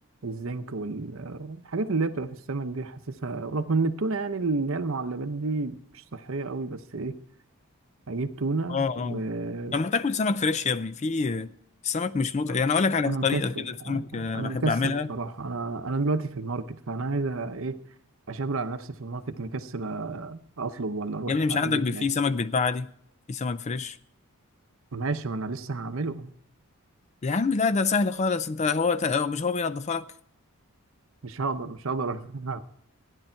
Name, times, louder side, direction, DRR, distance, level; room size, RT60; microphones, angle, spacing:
voice 1, 0.2-7.2 8.1-9.8 12.4-12.6 13.0-17.8 18.3-22.1 24.9-26.3 31.2-32.6, right 3 dB, 60° right, 0.8 m, -31 dB
voice 2, 8.7-9.3 9.7-11.5 11.8-15.1 21.3-22.9 23.3-24.0 27.2-30.1, left 4 dB, 30° left, 0.4 m, -26 dB
14.5 x 9.8 x 4.5 m
head